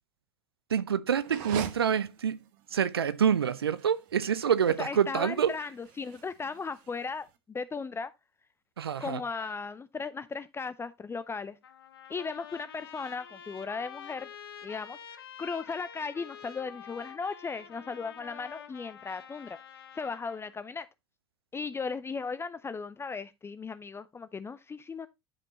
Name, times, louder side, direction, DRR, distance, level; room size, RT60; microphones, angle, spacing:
voice 1, 0.7-2.4 2.7-5.5 8.8-9.2, right 8 dB, 80° right, 0.6 m, -27 dB
sound 1, 1.2-7.3, right 10 dB, 60° right, 1.0 m, -44 dB
voice 2, 4.8-8.1 9.0-11.6 12.1-14.3 14.6-15.0 15.4-19.6 19.9-20.9 21.5-25.1, left 5 dB, 20° left, 0.6 m, -36 dB
Trumpet, 11.6-20.5, left 8 dB, 70° left, 0.9 m, -48 dB
10.5 x 5.3 x 3.0 m
figure-of-eight pair, 65°, 13 cm